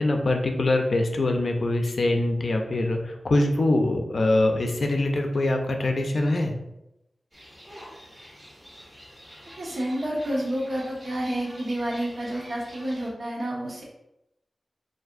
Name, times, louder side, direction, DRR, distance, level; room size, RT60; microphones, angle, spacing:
voice 1, 0.0-6.5, left 2 dB, 65° left, 4 dB, 0.5 m, -23 dB
sound 1, 7.3-13.1, equal, 15° right, 1.3 m, -47 dB
voice 2, 9.6-13.8, right 1 dB, 55° right, -3 dB, 1.1 m, -29 dB
4.4 x 2.5 x 2.5 m, 0.88 s
wide cardioid pair, 65°, 0 cm